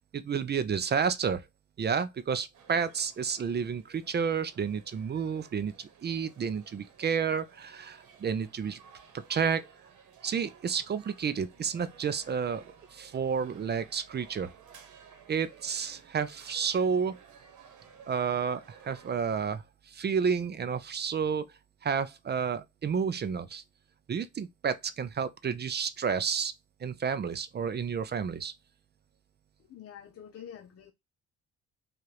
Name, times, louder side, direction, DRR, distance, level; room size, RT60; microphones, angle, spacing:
voice 1, 0.1-1.5 1.8-8.8 9.3-9.6 10.2-12.6 12.9-14.5 15.3-17.2 18.1-21.4 21.8-23.6 24.1-26.5 26.8-28.5, right 6 dB, 35° right, 0.5 m, -30 dB
sound 1, 2.5-19.1, right 7 dB, 80° right, 1.1 m, -55 dB
voice 2, 29.7-30.9, left 9 dB, 50° left, 0.6 m, -47 dB
4.8 x 2.5 x 2.9 m
cardioid pair, 90°, 30 cm